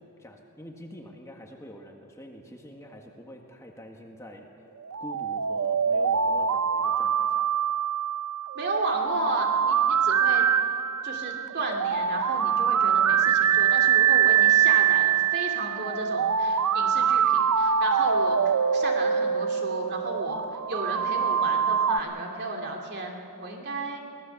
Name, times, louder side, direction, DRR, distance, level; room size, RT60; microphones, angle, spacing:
voice 1, 0.0-4.5 5.0-7.5, left 1 dB, 15° left, 2 dB, 1.6 m, -45 dB
sound 1, 4.8-22.0, right 7 dB, 90° right, 0.6 m, -24 dB
voice 2, 8.5-10.4 11.0-18.4 18.7-24.0, right 2 dB, 50° right, 1 dB, 2.7 m, -33 dB
24.0 x 18.0 x 7.1 m, 2.5 s
head